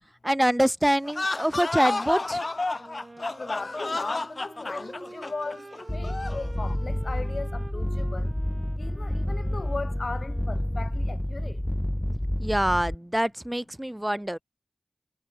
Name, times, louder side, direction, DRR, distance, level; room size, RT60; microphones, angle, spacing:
voice 1, 0.2-2.4 12.4-14.4, right 1 dB, 15° right, 0.5 m, -25 dB
sound 1, 1.0-6.5, left 2 dB, 55° left, 0.9 m, -31 dB
Wind instrument woodwind instrument, 2.7-11.1, right 2 dB, 50° right, 2.7 m, -47 dB
voice 2, 3.4-8.3 8.8-11.6, left 3 dB, 70° left, 7.8 m, -37 dB
sound 2, 5.9-13.0, left 1 dB, 15° left, 1.4 m, -29 dB
cardioid pair, 40°, 0 cm